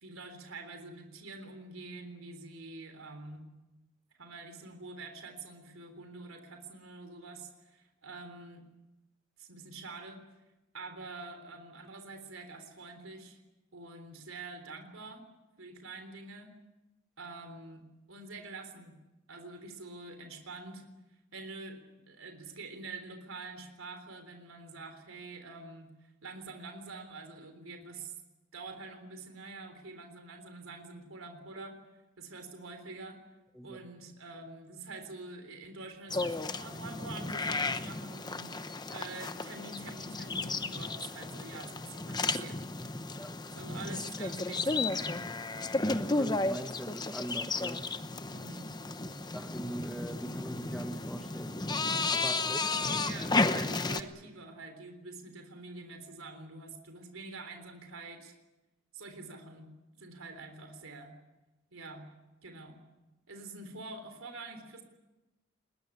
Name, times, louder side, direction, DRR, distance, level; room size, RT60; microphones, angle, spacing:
voice 1, 0.0-3.5 4.2-8.7 9.4-10.2 10.7-13.4 13.7-15.2 15.6-16.5 17.2-19.0 19.3-20.8 21.3-25.9 26.2-28.1 28.5-31.7 32.2-33.2 33.6-42.6 43.5-45.2 48.3-48.7 52.5-58.3 58.9-61.1 61.7-62.1 62.4-62.8 63.3-64.8, right 3 dB, 80° right, 6 dB, 3.7 m, -46 dB
sound 1, 36.1-54.0, left 3 dB, 20° left, 0.9 m, -33 dB
voice 2, 45.9-47.9 49.3-51.6 52.1-52.6, right 1 dB, ahead, 6 dB, 1.4 m, -41 dB
21.5 x 19.5 x 9.9 m, 1.0 s
head